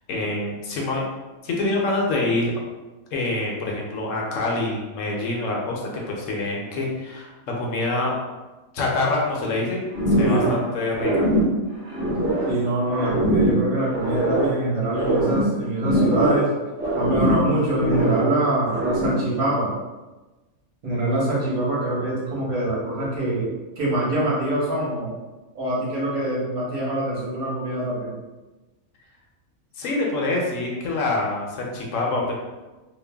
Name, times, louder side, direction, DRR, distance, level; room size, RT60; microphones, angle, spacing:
voice 1, 0.1-1.0 1.4-2.5 3.1-8.1 8.7-11.3 29.8-32.3, left 2 dB, 70° left, -2 dB, 0.9 m, -26 dB
sound 1, 9.9-10.7 10.9-12.6 12.9-14.6 14.9-16.5 16.8-18.3 18.7-19.3, right 1 dB, 10° right, 0.7 m, -22 dB
voice 2, 12.5-16.5 16.9-19.7 20.8-25.1 25.5-28.1, right 1 dB, 90° right, -6 dB, 1.4 m, -24 dB
3.1 x 2.1 x 2.2 m, 1.2 s
omnidirectional pair, 1.5 m